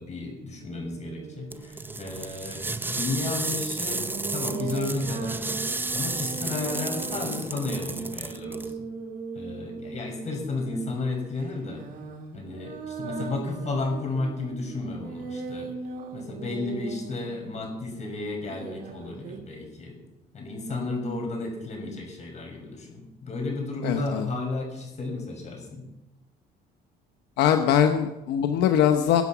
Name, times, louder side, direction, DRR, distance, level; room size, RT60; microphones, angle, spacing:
voice 1, 0.0-5.5 5.9-8.7 9.3-11.8 12.3-15.7 16.1-20.0 20.3-25.9, left 3 dB, 40° left, 2 dB, 6.7 m, -33 dB
sound 1, 0.6-2.7 3.9-10.6 11.4-17.8 18.5-19.4, right 5 dB, 55° right, 2.5 m, -39 dB
sound 2, 1.5-8.7, right 3 dB, 10° right, 0.6 m, -32 dB
voice 2, 23.8-24.3 27.4-29.2, left 9 dB, 80° left, 6 dB, 1.1 m, -22 dB
23.0 x 8.3 x 6.2 m, 0.94 s
cardioid pair, 110°, 17 cm